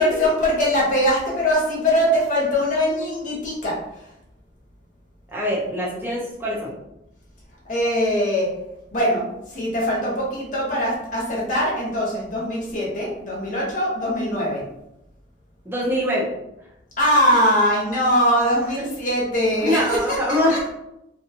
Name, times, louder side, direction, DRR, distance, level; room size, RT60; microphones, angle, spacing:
voice 1, 0.0-3.7 7.6-8.5 8.9-14.6 17.0-20.2 20.5-20.7, equal, 40° left, -5 dB, 0.9 m, -21 dB
voice 2, 5.3-6.7 15.7-16.3 18.8-18.9 19.6-20.6, equal, 10° right, -6 dB, 0.5 m, -23 dB
2.7 x 2.2 x 2.7 m, 0.87 s
head